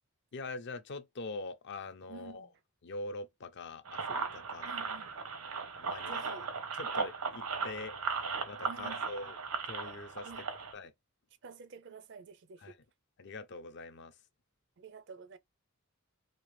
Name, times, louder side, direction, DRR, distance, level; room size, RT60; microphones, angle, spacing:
voice 1, 0.3-2.5 2.8-4.7 5.8-6.4 6.7-7.9 8.5-9.4 9.6-10.3 10.7-10.9 12.6-12.8 13.2-14.1, left 3 dB, 50° left, 0.5 m, -43 dB
voice 2, 2.1-2.5 4.6-5.2 6.0-6.5 8.6-9.1 10.2-10.5 11.4-12.8 14.8-15.4, right 4 dB, 55° right, 0.4 m, -50 dB
sound 1, 3.9-10.7, right 5 dB, 85° right, 0.9 m, -37 dB
3.2 x 2.8 x 3.2 m
head